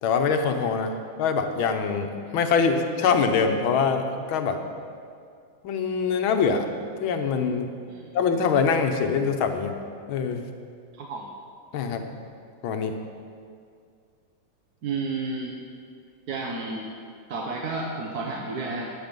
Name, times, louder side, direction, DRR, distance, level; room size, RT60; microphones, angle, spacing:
voice 1, 0.0-4.6 5.6-6.7 7.0-7.7 8.1-9.7 10.1-10.4 11.7-12.1 12.6-13.0, left 5 dB, 75° left, 6 dB, 1.8 m, -24 dB
voice 2, 10.9-11.3 14.8-15.6 16.3-16.9 17.3-18.9, right 3 dB, 55° right, -1 dB, 1.4 m, -31 dB
18.5 x 7.8 x 5.3 m, 2.2 s
omnidirectional pair, 2.3 m